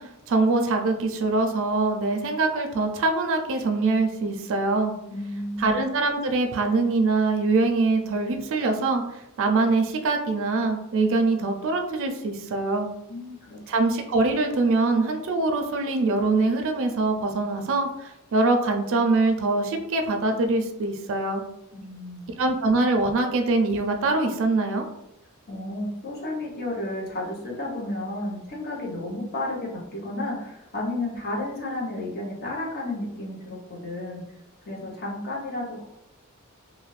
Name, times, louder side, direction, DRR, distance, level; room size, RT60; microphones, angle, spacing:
voice 1, 0.0-4.9 5.6-9.0 9.4-12.9 13.7-21.4 22.4-24.9, right 3 dB, 65° right, 4 dB, 0.4 m, -23 dB
voice 2, 5.1-5.8 13.1-13.6 21.7-22.3 25.5-34.2 34.6-35.9, left 1 dB, 45° left, -3 dB, 0.8 m, -32 dB
2.5 x 2.4 x 3.2 m, 0.87 s
head